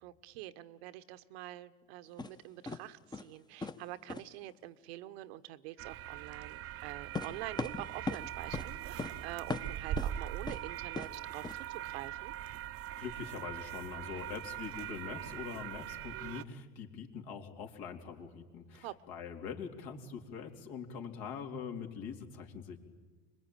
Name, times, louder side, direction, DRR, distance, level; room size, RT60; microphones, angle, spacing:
voice 1, 0.0-12.3 18.7-18.9, right 15 dB, 70° right, 12 dB, 1.2 m, -46 dB
sound 1, 2.2-2.3 2.7-2.8 3.1-3.4 3.6-3.8 4.1-4.2 7.2-8.2 8.5-8.7 9.0-9.1 9.5-10.1 10.5-10.6 11.0-11.1 11.4-11.6, left 3 dB, 15° left, 1.1 m, -38 dB
sound 2, 5.8-16.4, right 12 dB, 45° right, 0.9 m, -41 dB
voice 2, 13.0-22.8, left 6 dB, 65° left, 3 dB, 3.8 m, -43 dB
25.5 x 21.5 x 9.0 m, 1.4 s
hypercardioid pair, 85°, 32 cm